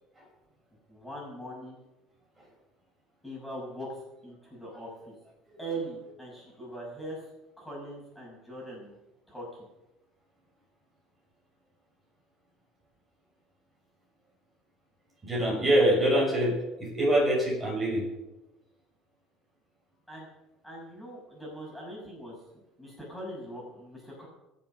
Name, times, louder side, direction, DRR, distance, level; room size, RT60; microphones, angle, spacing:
voice 1, 0.9-1.8 3.2-5.1 5.6-7.2 7.6-8.9 9.3-9.6 20.1-20.3 20.6-22.3 22.8-24.3, right 1 dB, 5° left, -4 dB, 6.3 m, -41 dB
voice 2, 15.2-16.5 16.8-18.0, right 1 dB, 20° right, -3 dB, 6.8 m, -24 dB
22.5 x 7.7 x 6.3 m, 0.99 s
cardioid pair, 120°, 0 cm